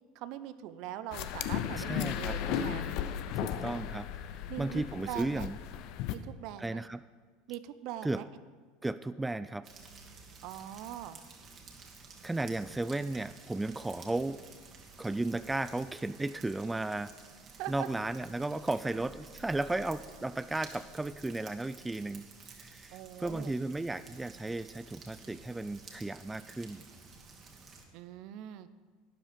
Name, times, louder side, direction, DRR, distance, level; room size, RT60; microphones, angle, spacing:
voice 1, 0.1-2.9 4.5-5.5 6.1-6.8 7.5-8.2 10.4-11.2 17.6-17.9 22.9-23.5 27.9-28.7, right 12 dB, 60° right, 13 dB, 0.7 m, -42 dB
sound 1, 1.1-6.2, left 10 dB, 60° left, 0.7 m, -35 dB
voice 2, 1.8-2.7 3.3-4.1 4.6-5.6 6.6-7.0 8.0-8.2 8.8-9.7 12.2-14.4 15.0-17.1 17.7-22.2 22.6-26.8, right 2 dB, 10° right, 13 dB, 0.4 m, -34 dB
sound 2, 9.6-27.8, right 4 dB, 40° right, 2.2 m, -53 dB
12.0 x 9.9 x 5.1 m, 1.5 s
hypercardioid pair, 85°, 0 cm